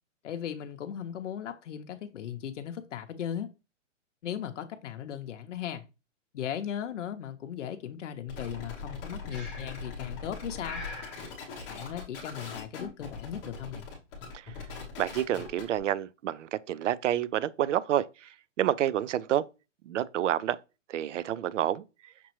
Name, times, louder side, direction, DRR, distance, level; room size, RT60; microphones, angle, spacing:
voice 1, 0.2-3.5 4.2-5.8 6.3-10.8 11.7-13.9, left 9 dB, 70° left, 0.7 m, -37 dB
sound 1, 8.3-15.8, left 4 dB, 15° left, 0.8 m, -41 dB
Breathing, 9.3-9.9 10.6-11.2, left 2 dB, ahead, 1.3 m, -42 dB
voice 2, 15.0-19.4 19.8-20.6 20.9-21.8, right 12 dB, 70° right, 0.5 m, -29 dB
5.9 x 3.0 x 3.0 m
hypercardioid pair, 170°, 38 cm